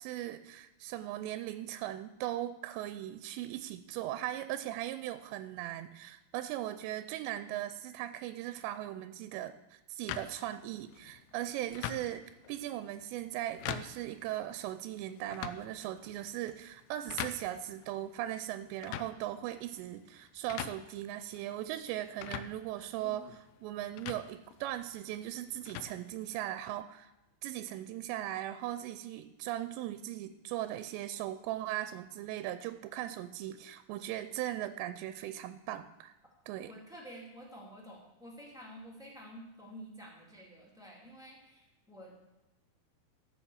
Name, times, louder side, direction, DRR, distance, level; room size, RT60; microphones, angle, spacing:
voice 1, 0.0-27.1 27.4-36.1 36.5-36.7, right 13 dB, 90° right, 11 dB, 2.8 m, -39 dB
sound 1, 10.1-26.7, left 11 dB, 80° left, 2.4 m, -46 dB
voice 2, 36.7-42.1, equal, 5° right, -4 dB, 0.6 m, -50 dB
13.5 x 6.2 x 7.0 m, 1.0 s
omnidirectional pair, 4.9 m